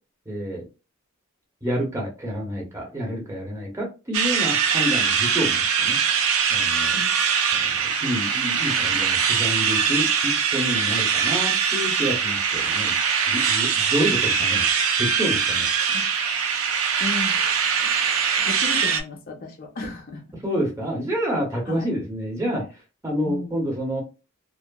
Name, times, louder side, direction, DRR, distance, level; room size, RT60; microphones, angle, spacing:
voice 1, 0.3-0.7 1.6-6.0 6.5-7.0 7.5-12.9 13.3-14.7 15.0-15.7 20.4-22.6 23.0-24.0, equal, 15° right, 0 dB, 0.8 m, -28 dB
sound 1, 4.1-19.0, right 6 dB, 85° right, 0.4 m, -22 dB
voice 2, 17.0-17.4 18.4-20.3 21.6-21.9 23.3-23.7, left 2 dB, 45° left, 1 dB, 0.6 m, -34 dB
2.9 x 2.1 x 2.2 m, 0.30 s
head